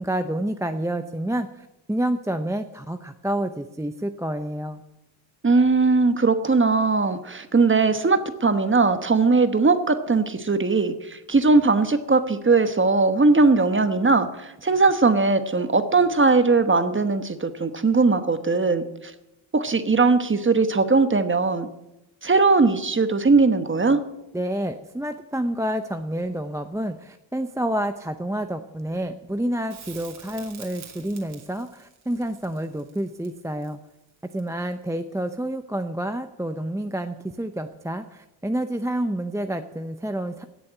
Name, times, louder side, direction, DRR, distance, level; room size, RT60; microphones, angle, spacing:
voice 1, 0.0-4.8 24.3-33.8 34.2-40.4, right 1 dB, 5° right, 7 dB, 0.6 m, -29 dB
voice 2, 5.4-19.1 19.5-21.7 22.2-24.0, right 3 dB, 25° right, 10 dB, 1.2 m, -20 dB
Crackle, 29.7-34.8 37.6-37.7, right 7 dB, 80° right, 2.8 m, -47 dB
17.0 x 6.9 x 8.9 m, 0.92 s
wide cardioid pair, 110°, 47 cm